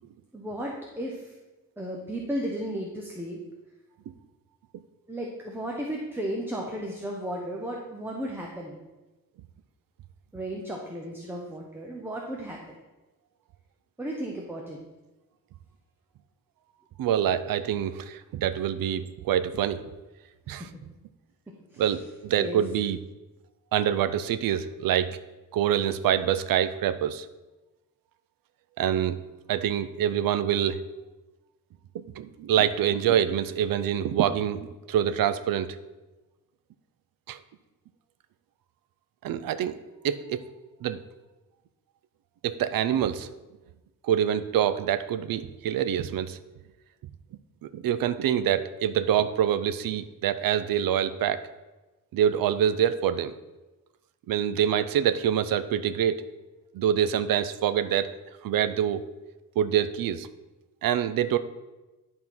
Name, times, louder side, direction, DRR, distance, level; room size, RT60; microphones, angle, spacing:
voice 1, 0.3-1.3 1.8-3.4 5.1-8.8 10.3-12.6 14.0-14.8 20.6-20.8 21.7-21.9 22.4-22.6, right 1 dB, 5° right, -1 dB, 0.7 m, -34 dB
voice 2, 17.0-19.8 20.5-20.7 21.8-23.0 23.7-25.2 25.5-27.3 28.8-29.2 29.5-30.8 32.2-35.8 37.3-37.4 39.2-39.8 40.0-40.4 40.8-41.0 42.4-43.3 44.0-46.4 47.6-51.5 52.1-53.3 54.3-56.2 56.7-58.1 58.4-59.0 59.6-60.3 60.8-61.4, right 9 dB, 80° right, 12 dB, 0.6 m, -25 dB
11.0 x 3.8 x 5.9 m, 1.1 s
wide cardioid pair, 180°, 34 cm